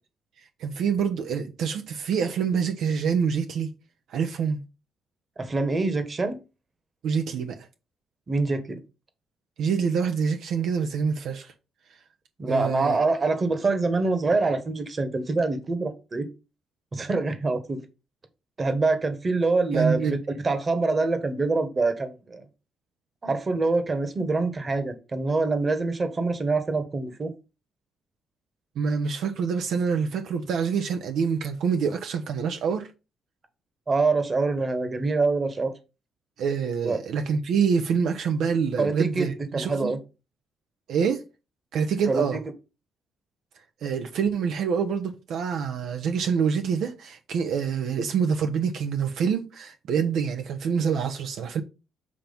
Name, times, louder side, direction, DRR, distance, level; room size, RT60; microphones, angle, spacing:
voice 1, 0.4-3.7 4.1-4.6 7.0-7.7 9.6-11.5 12.5-13.0 19.7-20.2 28.8-32.9 36.4-39.9 40.9-41.2 41.7-42.4 43.8-51.6, right 6 dB, 75° right, 0.8 m, -26 dB
voice 2, 5.4-6.4 8.3-8.8 12.4-16.3 16.9-17.8 18.6-20.2 20.4-22.4 23.2-27.3 33.9-35.7 36.8-37.0 38.8-40.0 42.1-42.4, right 3 dB, 35° right, 1.4 m, -25 dB
7.4 x 3.0 x 5.3 m
cardioid pair, 90°, 0 cm